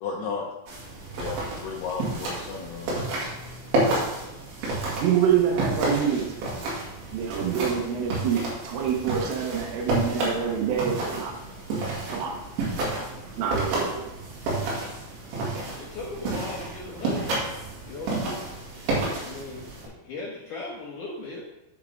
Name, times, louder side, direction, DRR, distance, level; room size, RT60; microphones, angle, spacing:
voice 1, 0.0-0.5 1.2-3.1, left 5 dB, 85° left, 0 dB, 2.3 m, -34 dB
sound 1, 0.7-19.9, right 2 dB, 70° right, 4.5 m, -30 dB
voice 2, 4.8-6.3 7.1-11.3 12.1-12.4 13.4-13.9, right 8 dB, 90° right, 1 dB, 3.7 m, -26 dB
voice 3, 15.8-18.5 19.0-21.4, left 2 dB, 70° left, -5 dB, 2.0 m, -38 dB
10.0 x 7.2 x 3.7 m, 0.95 s
omnidirectional pair, 5.7 m